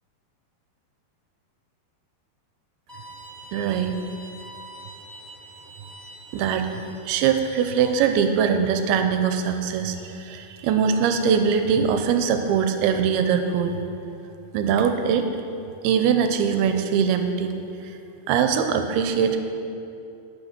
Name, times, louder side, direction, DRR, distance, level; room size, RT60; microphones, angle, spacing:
Bowed string instrument, 2.9-7.9, right 1 dB, 10° left, 1.7 m, -45 dB
voice 1, 3.5-4.0 6.3-6.7 7.1-13.8 14.5-15.3 15.8-17.5 18.3-19.4, right 7 dB, 85° right, 7 dB, 2.6 m, -22 dB
11.0 x 6.1 x 5.9 m, 2.6 s
omnidirectional pair, 4.5 m